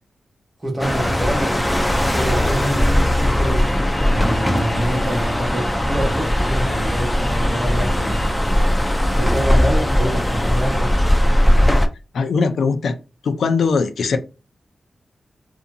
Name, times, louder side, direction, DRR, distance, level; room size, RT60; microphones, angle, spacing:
voice 1, 0.6-8.2 9.1-11.0, right 1 dB, 20° right, 1.0 m, -27 dB
sound 1, 0.8-11.9, left 1 dB, 10° left, 0.4 m, -18 dB
voice 2, 12.1-13.0 13.2-14.2, left 5 dB, 75° left, 0.4 m, -20 dB
2.6 x 2.6 x 2.6 m
wide cardioid pair, 150°, 0 cm